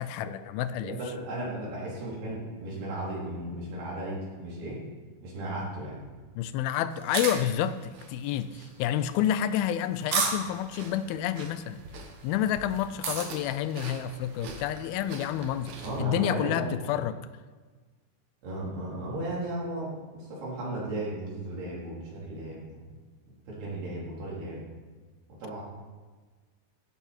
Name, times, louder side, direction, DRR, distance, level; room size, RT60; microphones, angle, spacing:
voice 1, 0.0-1.0 6.4-11.8 12.2-17.2, left 10 dB, 80° left, 13 dB, 2.4 m, -29 dB
voice 2, 0.8-4.8 5.2-6.0 15.8-16.7 18.4-22.6 23.5-24.6 25.3-25.6, right 1 dB, 90° right, -6 dB, 6.1 m, -35 dB
sound 1, 6.9-16.0, right 4 dB, 55° right, 2.5 m, -36 dB
15.5 x 10.5 x 4.5 m, 1.4 s
omnidirectional pair, 4.4 m